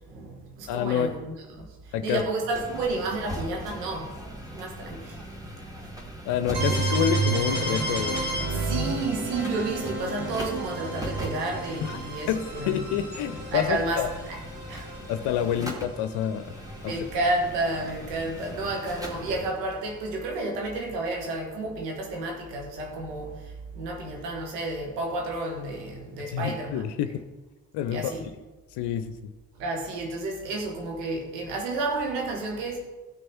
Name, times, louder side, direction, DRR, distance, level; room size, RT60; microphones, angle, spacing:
voice 1, 0.0-1.7 2.0-4.1 4.5-5.2 6.7-6.8 8.5-12.9 13.5-14.9 16.8-23.3 23.7-26.8 27.9-28.2 29.6-32.8, right 2 dB, 75° right, 1 dB, 1.8 m, -31 dB
voice 2, 0.7-1.2 1.9-2.2 6.2-8.2 11.8-12.0 12.3-14.1 15.1-16.5 16.8-16.9 26.3-27.2 27.7-28.1 28.7-29.1, left 9 dB, 55° left, 10 dB, 0.7 m, -28 dB
sound 1, 2.5-19.5, equal, 5° right, 2.3 m, -40 dB
sound 2, 6.5-16.3, right 3 dB, 55° right, 4.0 m, -31 dB
15.0 x 6.2 x 4.5 m, 1.2 s
figure-of-eight pair, 45°, 49 cm